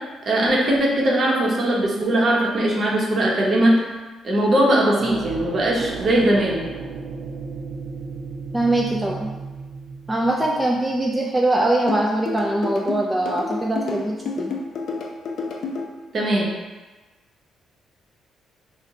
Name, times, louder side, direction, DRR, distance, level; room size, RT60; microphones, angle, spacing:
voice 1, 0.3-3.8 4.2-6.6 16.1-16.5, right 1 dB, 45° right, -3 dB, 0.8 m, -20 dB
sound 1, 4.9-10.8, right 4 dB, 80° right, 0.4 m, -34 dB
voice 2, 8.5-9.3 10.1-14.5, right 1 dB, 10° right, -2 dB, 0.3 m, -22 dB
sound 2, 11.9-15.9, left 4 dB, 65° left, 0.4 m, -29 dB
2.5 x 2.1 x 4.0 m, 1.2 s
cardioid pair, 90°, 0 cm